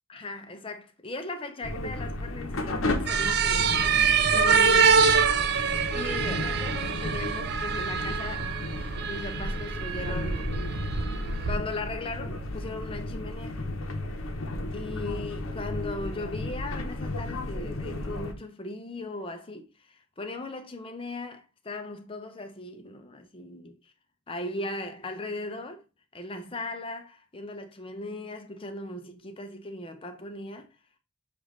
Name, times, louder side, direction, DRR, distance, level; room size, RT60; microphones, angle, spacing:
voice 1, 0.1-3.9 4.3-5.0 5.9-8.5 9.1-10.6 11.5-13.7 14.7-23.9 24.3-25.8 26.1-30.7, left 2 dB, 25° left, 0.6 m, -38 dB
sound 1, 1.6-18.3, left 1 dB, 90° left, 0.8 m, -34 dB
sound 2, 3.1-11.6, right 6 dB, 50° right, 0.4 m, -25 dB
6.8 x 2.5 x 3.1 m
head